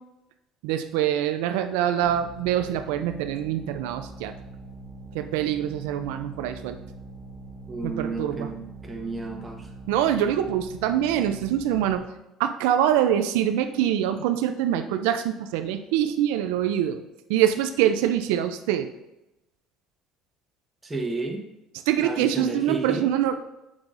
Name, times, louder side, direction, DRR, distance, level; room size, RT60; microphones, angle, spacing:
voice 1, 0.6-4.3 5.1-6.8 7.8-8.5 9.9-12.0 12.4-17.0 17.3-18.9 21.9-23.4, right 10 dB, 90° right, 8 dB, 0.4 m, -24 dB
sound 1, 2.0-12.0, right 2 dB, 25° left, 1.5 m, -43 dB
voice 2, 7.7-9.7 20.8-21.4 22.0-23.1, right 3 dB, 15° right, 1 dB, 1.2 m, -32 dB
7.1 x 6.0 x 2.5 m, 0.92 s
cardioid pair, 110°, 0 cm